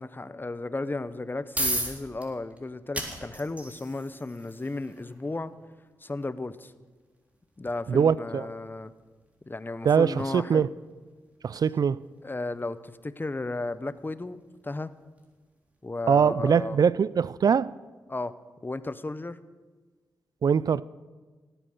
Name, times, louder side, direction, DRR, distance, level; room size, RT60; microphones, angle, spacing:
voice 1, 0.0-5.5 6.0-6.7 7.6-8.9 9.4-10.7 12.2-14.4 14.6-14.9 15.8-16.8 18.1-18.4 18.6-19.4, left 2 dB, 30° left, 0.9 m, -34 dB
sound 1, 1.1-15.9, right 1 dB, 20° right, 3.8 m, -40 dB
voice 2, 7.9-8.5 9.8-10.7 11.4-12.0 16.1-17.7 20.4-20.8, right 7 dB, 60° right, 0.4 m, -22 dB
17.5 x 9.1 x 6.5 m
supercardioid pair, 45°, 7 cm